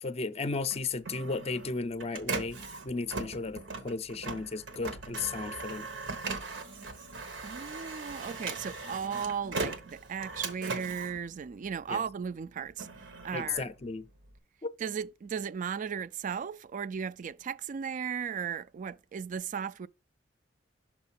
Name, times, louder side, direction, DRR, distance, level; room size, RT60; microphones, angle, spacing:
voice 1, 0.0-2.6 2.8-5.9 11.9-12.0 13.3-14.1 14.6-14.7, left 4 dB, 35° left, 0.5 m, -34 dB
Printer, 0.7-12.1 12.5-14.4, right 3 dB, 90° right, 1.2 m, -39 dB
voice 2, 7.4-12.9 13.2-13.7 14.8-19.9, right 7 dB, 45° right, 0.3 m, -36 dB
6.3 x 3.6 x 5.8 m
head